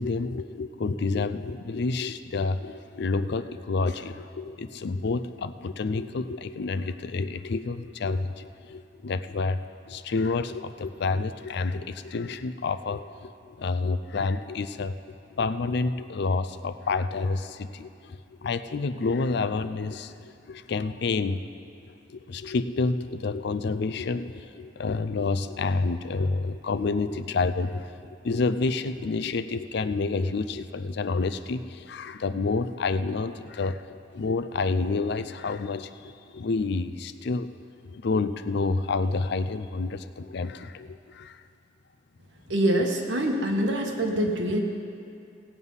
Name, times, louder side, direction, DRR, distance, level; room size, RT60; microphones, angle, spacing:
voice 1, 0.0-21.4 22.1-37.5 37.9-41.4, left 3 dB, 65° left, 12 dB, 0.5 m, -29 dB
voice 2, 42.5-44.6, right 1 dB, 80° right, 2 dB, 1.4 m, -25 dB
17.0 x 8.1 x 5.5 m, 2.5 s
head